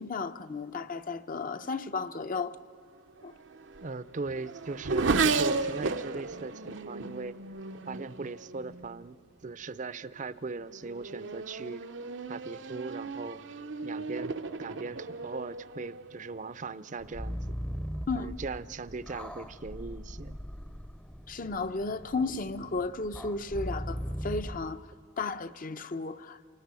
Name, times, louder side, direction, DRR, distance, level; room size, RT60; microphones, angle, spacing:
voice 1, 0.0-2.6 3.2-3.4 18.1-18.3 21.3-24.9 25.2-26.4, left 3 dB, 45° left, 0.8 m, -34 dB
Race car auto racing / Accelerating revving vroom, 3.2-9.1 9.9-10.2 10.7-16.6, right 4 dB, 80° right, 0.8 m, -34 dB
voice 2, 3.8-7.4 7.9-9.2 9.4-11.9 12.3-13.4 13.8-17.6 18.1-20.4, right 3 dB, 40° right, 0.6 m, -39 dB
sound 1, 17.0-24.7, equal, 5° left, 0.7 m, -39 dB
28.0 x 19.0 x 8.3 m
head